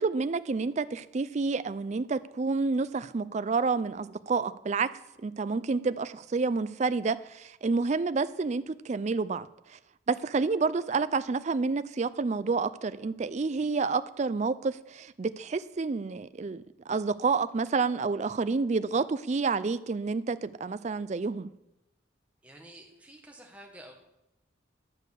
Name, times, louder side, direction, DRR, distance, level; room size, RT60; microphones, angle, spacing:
voice 1, 0.0-4.9 5.2-9.8 10.1-21.5, right 4 dB, 35° right, 14 dB, 0.4 m, -29 dB
voice 2, 22.4-23.9, right 1 dB, 5° right, 1 dB, 1.6 m, -50 dB
10.5 x 6.6 x 6.8 m, 0.91 s
head